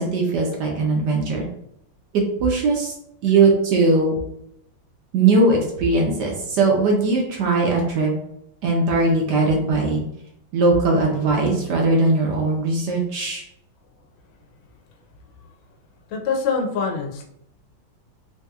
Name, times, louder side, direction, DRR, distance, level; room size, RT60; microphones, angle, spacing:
voice 1, 0.0-1.5 2.1-2.9 3.2-4.2 5.1-8.1 8.6-10.0 10.5-13.4, right 3 dB, 65° right, 0 dB, 1.2 m, -19 dB
voice 2, 16.1-17.2, left 5 dB, 90° left, 2 dB, 1.5 m, -24 dB
4.2 x 2.7 x 2.3 m, 0.77 s
omnidirectional pair, 2.2 m